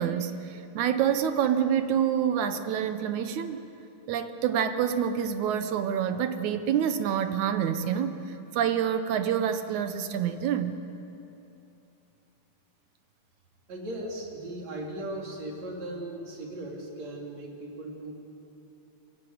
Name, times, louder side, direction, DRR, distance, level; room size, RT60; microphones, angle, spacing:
voice 1, 0.0-3.6 4.1-8.2 8.5-10.8, right 8 dB, 70° right, 9 dB, 2.2 m, -27 dB
voice 2, 13.7-18.1, right 1 dB, 55° right, -1 dB, 4.1 m, -37 dB
24.0 x 15.5 x 9.4 m, 2.8 s
omnidirectional pair, 3.7 m